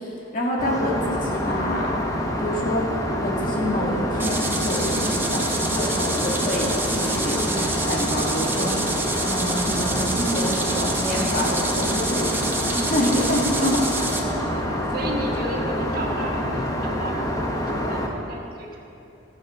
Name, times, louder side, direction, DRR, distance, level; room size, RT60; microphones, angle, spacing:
voice 1, 0.0-1.9 2.4-12.3 12.6-13.8, left 1 dB, 45° left, -3 dB, 2.1 m, -27 dB
Aircraft, 0.6-18.1, equal, 15° left, 0.9 m, -27 dB
sound 1, 4.2-14.2, right 3 dB, 10° right, 0.9 m, -28 dB
voice 2, 12.1-12.5 13.9-18.8, right 1 dB, 45° right, -1 dB, 1.7 m, -33 dB
15.5 x 7.2 x 6.2 m, 2.8 s
head